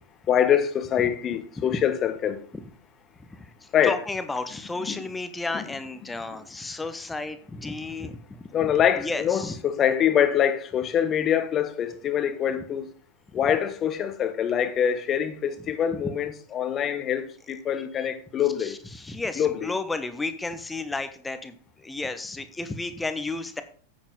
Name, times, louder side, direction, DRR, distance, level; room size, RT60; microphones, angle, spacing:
voice 1, 0.3-2.4 3.7-4.0 4.9-5.0 5.5-5.7 6.3-6.4 7.7-7.8 8.5-12.9 13.3-18.8 19.4-19.7, left 9 dB, 30° left, 1.2 m, -24 dB
voice 2, 3.3-8.2 8.6-8.7 9.0-9.6 18.6-23.6, left 3 dB, 10° left, 1.2 m, -32 dB
10.0 x 8.5 x 4.0 m
figure-of-eight pair, 90°, 0 cm